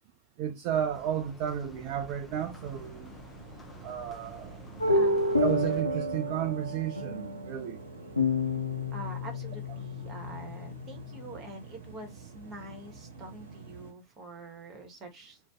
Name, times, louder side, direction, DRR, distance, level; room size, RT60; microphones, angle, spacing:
voice 1, 0.4-3.1 3.8-4.8 5.4-7.8, right 9 dB, 45° right, 0.3 m, -33 dB
sound 1, 0.7-5.8, left 2 dB, 15° left, 0.5 m, -51 dB
sound 2, 2.3-13.9, right 4 dB, 60° right, 0.9 m, -48 dB
sound 3, 4.8-11.3, left 1 dB, 85° left, 0.4 m, -30 dB
voice 2, 4.8-5.4 8.9-15.4, right 2 dB, 30° right, 1.0 m, -45 dB
2.5 x 2.1 x 3.2 m
figure-of-eight pair, 90°, 0 cm